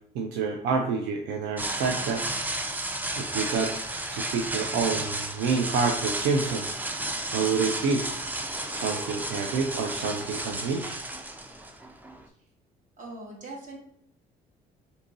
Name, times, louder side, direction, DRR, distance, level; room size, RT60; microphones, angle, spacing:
voice 1, 0.1-2.2 3.2-3.7 4.1-6.7 7.3-8.0 8.7-11.0, right 5 dB, 85° right, 2 dB, 0.4 m, -28 dB
sound 1, 1.6-12.2, right 1 dB, 10° right, 0.3 m, -33 dB
voice 2, 13.0-13.8, right 2 dB, 50° right, -2 dB, 0.9 m, -40 dB
2.7 x 2.6 x 3.8 m, 0.70 s
cardioid pair, 110°, 17 cm